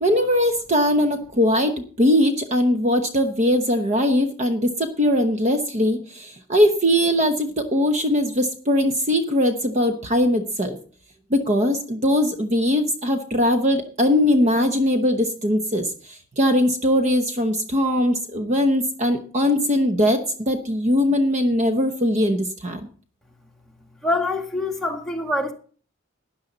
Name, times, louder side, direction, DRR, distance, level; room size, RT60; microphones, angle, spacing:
voice 1, 0.0-10.8 11.3-22.9, left 1 dB, 35° right, 0.9 m, -21 dB
voice 2, 24.0-25.5, left 2 dB, ahead, 1.8 m, -25 dB
13.0 x 10.5 x 4.0 m
head